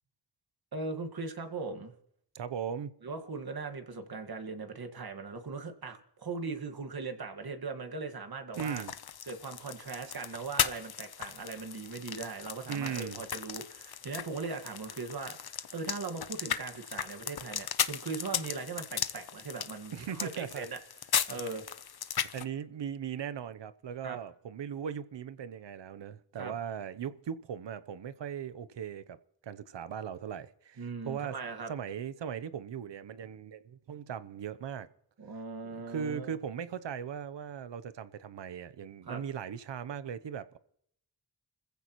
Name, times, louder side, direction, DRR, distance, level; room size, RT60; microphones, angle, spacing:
voice 1, 0.7-1.9 3.0-8.8 9.3-20.8 21.3-21.6 24.0-24.2 26.4-26.5 30.8-31.7 35.2-36.4 39.1-39.2, right 4 dB, 60° right, 1.9 m, -39 dB
voice 2, 2.3-3.0 8.6-8.9 12.7-13.2 19.9-20.7 22.3-29.2 29.4-31.3 31.7-34.9 35.6-40.6, right 8 dB, 85° right, 0.9 m, -38 dB
sound 1, 8.5-22.4, left 8 dB, 65° left, 0.9 m, -37 dB
29.5 x 15.0 x 3.1 m
wide cardioid pair, 110°, 42 cm